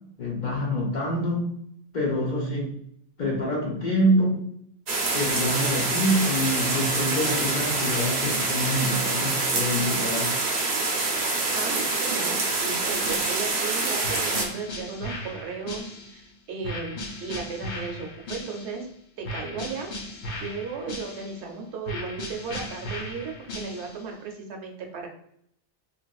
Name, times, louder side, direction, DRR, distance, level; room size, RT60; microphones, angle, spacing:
voice 1, 0.2-1.5 1.9-2.8 3.2-4.4 5.1-10.3, equal, 50° left, -3 dB, 0.7 m, -26 dB
sound 1, 4.9-14.5, right 3 dB, 50° right, 0.5 m, -26 dB
voice 2, 11.5-18.9 19.2-19.9 20.4-25.1, right 5 dB, 75° right, 2 dB, 0.9 m, -35 dB
sound 2, 12.8-13.6 14.0-16.2 16.6-18.9 19.2-21.5 21.8-24.1, left 1 dB, 75° left, 0.9 m, -37 dB
2.9 x 2.5 x 2.3 m, 0.70 s
omnidirectional pair, 1.2 m